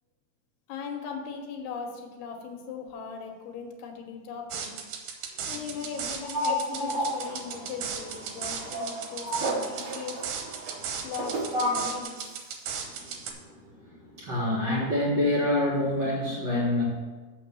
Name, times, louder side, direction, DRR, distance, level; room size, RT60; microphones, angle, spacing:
voice 1, 0.7-4.8 5.5-10.2 11.0-12.5, left 6 dB, 85° left, 3 dB, 3.1 m, -39 dB
sound 1, 4.5-13.3, right 7 dB, 70° right, 2.4 m, -36 dB
voice 2, 6.3-7.1 8.7-8.8 9.2-9.4 10.8-10.9 11.5-11.8 13.0-13.6 13.8-16.8, left 1 dB, 55° right, -6 dB, 1.2 m, -27 dB
sound 2, 6.9-12.0, right 3 dB, 90° right, 1.5 m, -37 dB
6.9 x 5.9 x 6.8 m, 1.4 s
omnidirectional pair, 4.6 m